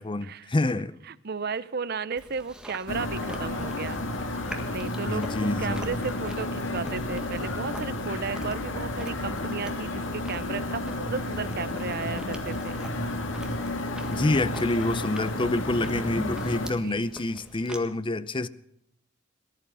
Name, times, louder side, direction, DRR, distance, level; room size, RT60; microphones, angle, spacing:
voice 1, 0.0-0.9 5.1-5.9 14.1-18.5, left 2 dB, 25° left, 0.6 m, -27 dB
voice 2, 1.1-4.0 4.4-12.8 16.7-17.1, right 5 dB, 50° right, 0.7 m, -34 dB
Chewing mastication, 2.2-17.8, equal, 5° right, 1.7 m, -44 dB
sound 1, 2.9-16.7, left 2 dB, 70° left, 1.8 m, -32 dB
19.0 x 11.5 x 5.5 m
head